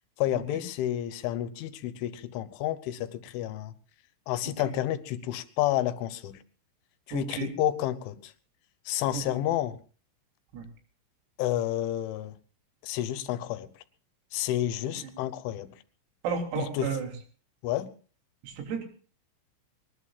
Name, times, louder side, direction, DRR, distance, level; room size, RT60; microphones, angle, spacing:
voice 1, 0.2-3.7 4.3-6.4 7.1-8.3 8.9-9.8 11.4-12.4 12.8-13.7 14.3-15.7 16.6-16.9 17.6-17.9, left 12 dB, 75° left, 12 dB, 3.2 m, -30 dB
voice 2, 7.1-7.5 9.1-9.2 10.5-10.7 15.0-15.1 16.2-17.1 18.4-18.8, right 6 dB, 85° right, 3 dB, 6.1 m, -32 dB
23.5 x 20.0 x 2.4 m, 0.38 s
omnidirectional pair, 6.0 m